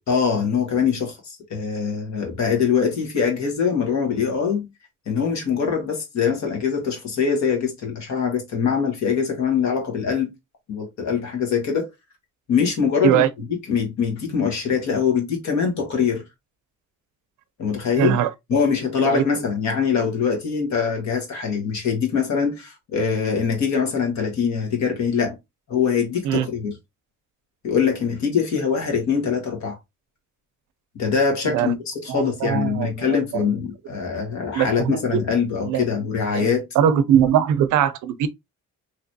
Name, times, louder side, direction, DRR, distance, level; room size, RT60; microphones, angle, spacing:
voice 1, 0.1-4.7 5.1-10.3 10.7-11.9 12.5-13.2 13.7-16.2 17.6-18.2 18.5-25.4 25.7-26.8 27.6-29.8 30.9-36.6, left 6 dB, 65° left, 1.6 m, -23 dB
voice 2, 18.0-18.6 19.0-19.2 26.2-26.5 31.4-31.7 32.1-33.1 33.3-33.4 34.5-35.2 35.6-35.8 36.3-36.5 36.8-38.3, right 10 dB, 90° right, 0.5 m, -21 dB
3.1 x 2.9 x 2.7 m
cardioid pair, 90°, 30 cm